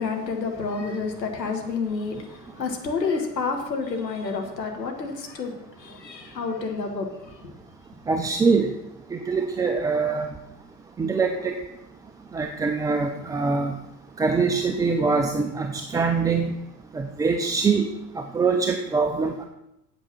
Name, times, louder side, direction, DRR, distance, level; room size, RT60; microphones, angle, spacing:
voice 1, 0.0-7.6, left 4 dB, 85° left, 3 dB, 1.6 m, -29 dB
voice 2, 8.1-8.7 9.1-10.3 11.0-11.6 12.3-13.8 14.2-16.6 16.9-17.9 18.1-19.4, right 4 dB, 10° right, 4 dB, 0.4 m, -23 dB
8.6 x 7.9 x 6.0 m, 0.86 s
figure-of-eight pair, 80°, 49 cm